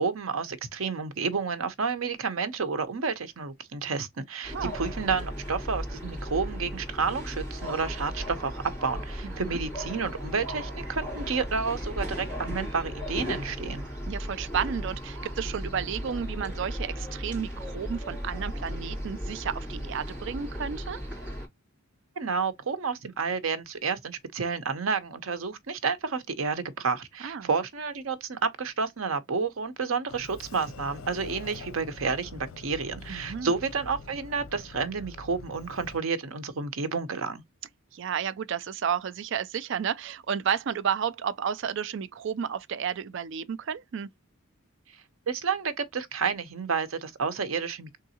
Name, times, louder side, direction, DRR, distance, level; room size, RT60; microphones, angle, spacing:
voice 1, 0.0-13.8 22.2-37.4 45.3-48.0, right 5 dB, 85° right, 0.8 m, -30 dB
sound 1, 4.4-21.5, equal, 5° right, 3.0 m, -36 dB
voice 2, 9.2-9.6 14.1-21.0 27.2-27.5 33.1-33.5 37.9-44.1, right 7 dB, 60° right, 0.4 m, -32 dB
Sliding door, 30.1-36.0, left 3 dB, 90° left, 0.7 m, -44 dB
3.8 x 3.6 x 2.8 m
head